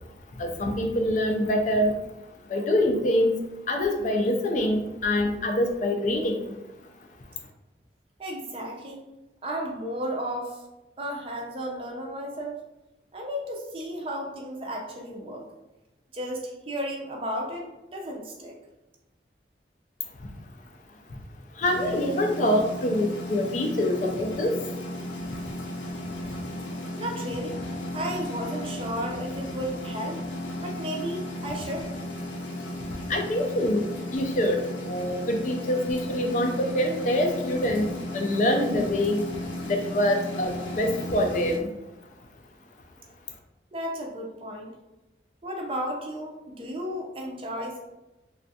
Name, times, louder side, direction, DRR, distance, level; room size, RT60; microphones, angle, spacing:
voice 1, 0.3-2.0 2.5-3.4 3.7-6.5 20.2-20.3 21.5-24.6 25.0-25.4 26.2-26.3 33.1-39.3 39.6-41.7, left 1 dB, 45° left, 3 dB, 0.4 m, -25 dB
voice 2, 8.2-9.1 9.4-10.6 11.0-12.6 13.1-15.5 16.1-18.6 27.0-27.6 27.9-30.2 30.6-31.9 43.7-44.8 45.4-47.8, equal, 30° right, 0 dB, 0.4 m, -33 dB
sound 1, 21.6-41.6, left 1 dB, 90° left, 0.6 m, -35 dB
3.2 x 2.3 x 2.6 m, 0.99 s
head